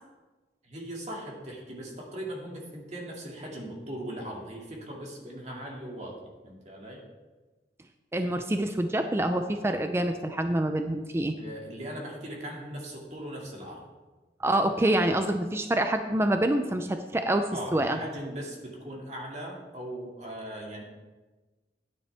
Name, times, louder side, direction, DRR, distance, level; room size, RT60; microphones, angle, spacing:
voice 1, 0.6-7.0 11.4-13.8 17.5-20.8, right 1 dB, 40° right, -1 dB, 2.2 m, -39 dB
voice 2, 8.1-11.4 14.4-17.5 17.7-18.0, right 1 dB, 15° right, 7 dB, 0.4 m, -26 dB
11.5 x 9.7 x 3.4 m, 1.2 s
head